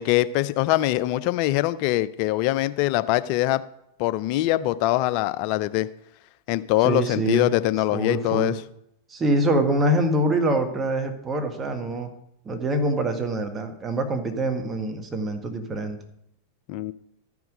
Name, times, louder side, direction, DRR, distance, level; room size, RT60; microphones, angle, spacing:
voice 1, 0.0-3.6 4.0-5.9 6.5-8.5 16.7-16.9, left 15 dB, 45° left, 14 dB, 0.5 m, -23 dB
voice 2, 6.8-7.5 7.9-8.5 9.1-12.1 12.4-16.0, right 1 dB, 20° right, 5 dB, 1.5 m, -25 dB
13.0 x 5.9 x 5.2 m, 0.77 s
figure-of-eight pair, 90°, 0 cm